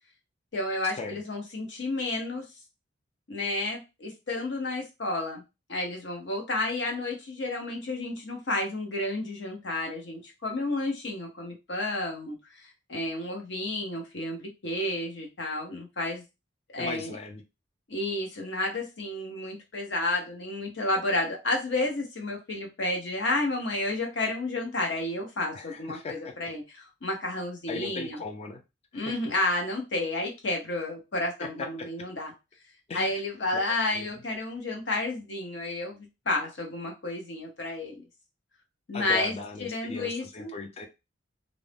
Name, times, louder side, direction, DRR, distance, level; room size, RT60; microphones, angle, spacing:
voice 1, 0.5-2.4 3.3-5.4 5.7-16.2 16.7-17.1 17.9-28.2 28.9-32.3 32.9-38.0 38.9-39.3 39.6-40.5, left 2 dB, 65° left, 1 dB, 0.9 m, -31 dB
voice 2, 16.8-17.4 25.5-26.3 27.7-28.6 29.1-29.2 31.4-31.5 32.9-33.1 33.5-33.6 33.9-34.1 38.9-40.9, left 3 dB, 35° left, 4 dB, 0.4 m, -37 dB
2.6 x 2.0 x 3.3 m, 0.26 s
head